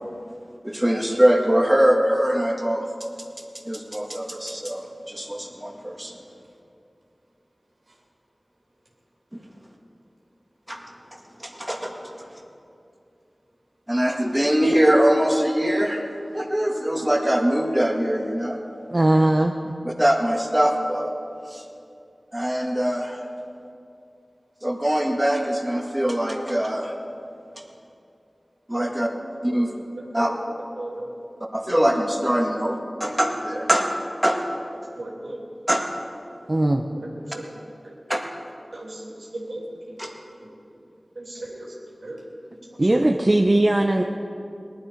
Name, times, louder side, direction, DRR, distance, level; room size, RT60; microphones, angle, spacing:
voice 1, 0.6-2.9 3.7-6.2 10.7-10.8 11.4-12.4 13.9-16.0 16.3-18.6 19.8-21.1 21.5-21.6 22.3-23.2 24.6-26.9 28.7-29.1 29.4-29.7 30.1-30.3 31.5-33.8 34.2-34.4 35.7-35.8 38.1-38.2 40.0-40.2, equal, 15° right, 2 dB, 1.8 m, -22 dB
voice 2, 18.9-19.7 36.5-36.8 42.8-44.0, right 1 dB, 40° right, 3 dB, 0.7 m, -19 dB
voice 3, 30.0-30.3 30.8-31.1 33.5-33.6 35.0-35.4 36.8-38.0 38.7-40.0 40.4-40.5 41.1-42.2 42.5-42.9, right 1 dB, 85° right, -3 dB, 2.9 m, -37 dB
19.0 x 12.0 x 5.1 m, 2.6 s
wide cardioid pair, 50°, 0 cm